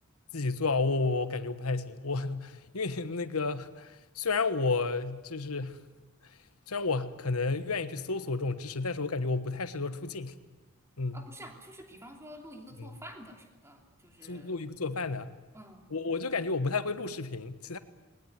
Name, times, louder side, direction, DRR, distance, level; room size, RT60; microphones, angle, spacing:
voice 1, 0.3-5.8 6.7-10.3 11.0-11.2 12.8-12.9 14.2-15.3 15.9-17.8, left 3 dB, 80° left, 11 dB, 1.3 m, -31 dB
voice 2, 11.1-14.6 15.5-15.9, equal, 15° right, 2 dB, 3.0 m, -49 dB
20.5 x 19.5 x 9.5 m, 1.2 s
head